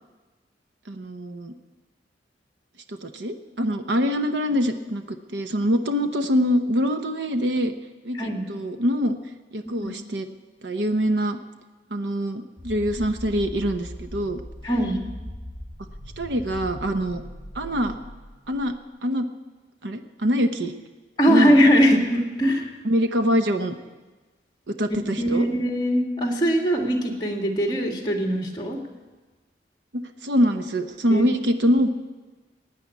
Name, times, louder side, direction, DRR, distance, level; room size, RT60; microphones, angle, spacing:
voice 1, 0.9-1.5 2.9-7.7 8.0-9.2 9.5-10.3 10.6-11.4 11.9-14.4 16.2-17.2 17.5-18.0 18.5-18.7 19.0-19.3 19.8-20.7 21.3-21.6 22.8-23.7 24.7-25.5 29.9-31.9, equal, 80° right, 7 dB, 0.9 m, -24 dB
sound 1, 12.6-18.8, left 1 dB, 5° right, 5.3 m, -39 dB
voice 2, 14.6-15.0 21.2-22.7 25.2-28.8 31.1-31.2, equal, 25° left, 1 dB, 2.1 m, -21 dB
16.5 x 9.5 x 8.4 m, 1.3 s
head